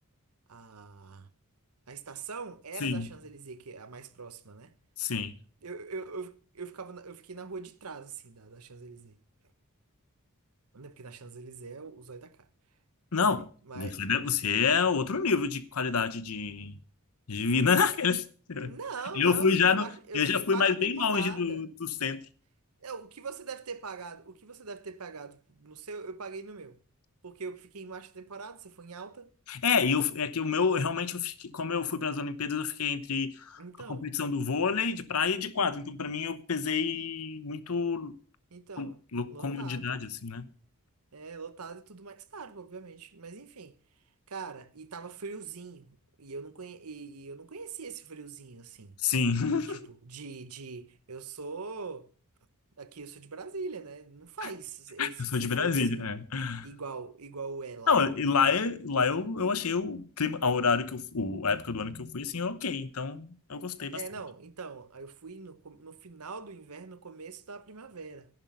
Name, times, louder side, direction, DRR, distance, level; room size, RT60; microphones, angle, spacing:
voice 1, 0.5-1.3 1.9-4.7 5.6-9.2 10.7-12.5 13.2-14.0 18.6-21.6 22.8-26.8 27.2-29.3 33.6-34.1 35.7-35.8 38.5-39.0 39.3-40.0 41.1-43.7 44.3-49.0 49.7-52.1 52.8-56.1 56.6-58.5 63.9-68.3, right 4 dB, 90° right, 1.1 m, -42 dB
voice 2, 2.8-3.1 5.0-5.3 13.1-13.5 13.7-16.8 17.3-18.8 19.1-19.9 20.1-22.2 29.5-33.6 33.9-38.2 38.8-40.5 49.0-49.8 54.4-54.5 55.0-56.7 57.9-64.0, left 5 dB, 80° left, 1.0 m, -28 dB
11.0 x 11.0 x 5.6 m
head